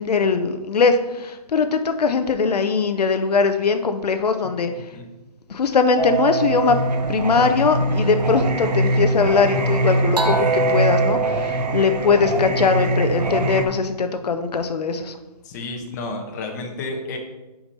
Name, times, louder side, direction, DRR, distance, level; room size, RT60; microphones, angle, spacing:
voice 1, 0.0-4.9 5.5-6.8 7.1-15.2, left 5 dB, 75° left, 8 dB, 0.8 m, -20 dB
Singing, 6.0-13.6, right 2 dB, 80° right, 1.2 m, -22 dB
voice 2, 15.4-17.2, left 2 dB, 25° left, 2 dB, 1.0 m, -31 dB
5.9 x 5.1 x 5.6 m, 1.1 s
hypercardioid pair, 165°, 20 cm